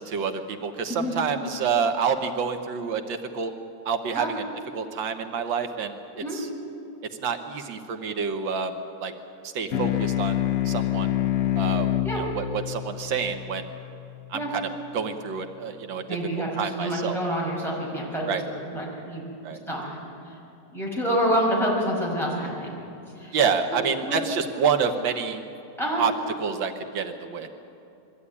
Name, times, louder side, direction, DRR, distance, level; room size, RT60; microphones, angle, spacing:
voice 1, 0.0-3.5 3.8-4.4 4.7-6.0 6.3-6.5 7.2-9.1 9.4-11.1 11.6-13.7 14.3-16.0 16.4-17.2 18.3-18.4 19.4-19.6 23.3-25.4 26.0-26.1 26.4-27.5, right 6 dB, 85° right, 6 dB, 1.8 m, -28 dB
voice 2, 0.9-1.2 4.1-4.3 6.1-6.4 12.0-12.2 14.3-14.5 16.1-19.3 19.7-20.0 20.3-20.4 20.7-22.7 23.1-23.4 23.7-24.2 25.8-26.0, equal, ahead, -4 dB, 6.0 m, -28 dB
sound 1, 9.7-14.6, left 12 dB, 60° left, 0.9 m, -27 dB
22.0 x 14.5 x 9.8 m, 2.7 s
omnidirectional pair, 2.0 m